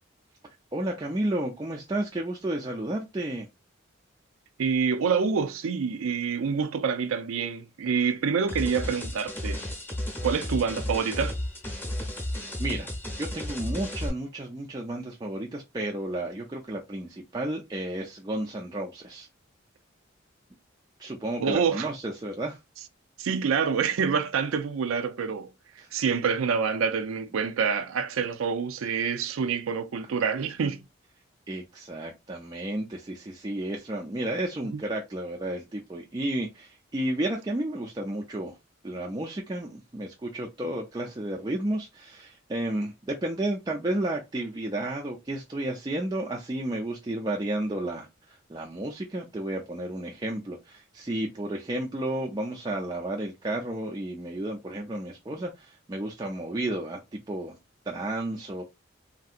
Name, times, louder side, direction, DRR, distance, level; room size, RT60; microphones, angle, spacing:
voice 1, 0.7-3.5 12.6-12.9 13.2-19.3 21.0-22.6 25.8-25.9 31.5-38.6 38.8-57.6 57.9-58.6, right 1 dB, 20° right, 0.3 m, -32 dB
voice 2, 4.6-9.6 10.2-11.4 21.4-21.9 23.2-25.5 25.9-30.8 34.7-34.8, right 6 dB, 90° right, 0.4 m, -27 dB
sound 1, 8.5-14.1, left 1 dB, 10° left, 0.8 m, -33 dB
3.2 x 2.7 x 2.4 m
head